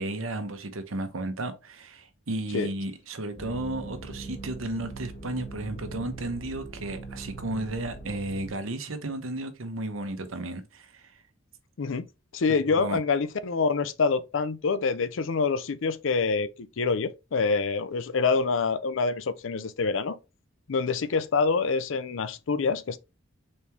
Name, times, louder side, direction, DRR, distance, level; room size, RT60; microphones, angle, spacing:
voice 1, 0.0-11.1 12.7-13.0, right 2 dB, 90° right, 0.9 m, -33 dB
sound 1, 3.4-8.5, right 3 dB, 50° left, 1.9 m, -41 dB
voice 2, 12.3-16.5 16.8-20.2 20.7-23.0, left 4 dB, 70° left, 0.5 m, -26 dB
4.3 x 3.5 x 2.9 m
head